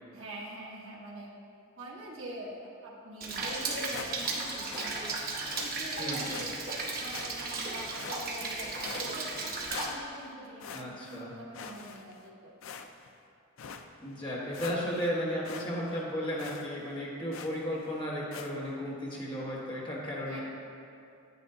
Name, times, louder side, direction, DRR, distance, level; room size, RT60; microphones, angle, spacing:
voice 1, 0.1-1.3 1.8-5.1 5.6-6.6 6.9-9.5 9.8-12.5 20.3-20.4, right 1 dB, 65° right, -5 dB, 1.2 m, -44 dB
Rain, 3.2-9.9, right 3 dB, 45° right, 0.9 m, -35 dB
sound 1, 3.9-4.4 4.7-4.9 5.5-5.7 6.3-6.5 7.1-7.6 8.0-8.5 8.8-9.4 9.7-10.3 10.6-11.2 11.5-12.2 12.6-13.1 13.6-13.8 14.2-14.3 14.5-15.1 15.4-15.7 15.9-16.0 16.4-16.7 17.3-17.6 18.3-18.5, left 6 dB, 65° left, 0.4 m, -44 dB
voice 2, 6.0-6.4 10.7-11.3 14.0-20.4, equal, 20° left, -5 dB, 1.4 m, -34 dB
9.2 x 8.3 x 2.8 m, 2.5 s
head